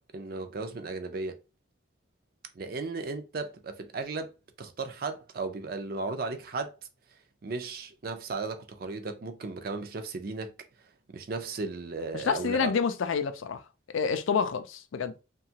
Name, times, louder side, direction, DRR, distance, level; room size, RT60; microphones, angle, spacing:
voice 1, 0.1-1.4 2.6-4.3 4.6-6.7 7.4-10.5 11.1-12.7, right 3 dB, 50° right, 0.4 m, -35 dB
voice 2, 12.1-13.6 13.9-15.1, left 6 dB, 90° left, 0.4 m, -28 dB
2.8 x 2.3 x 2.7 m
head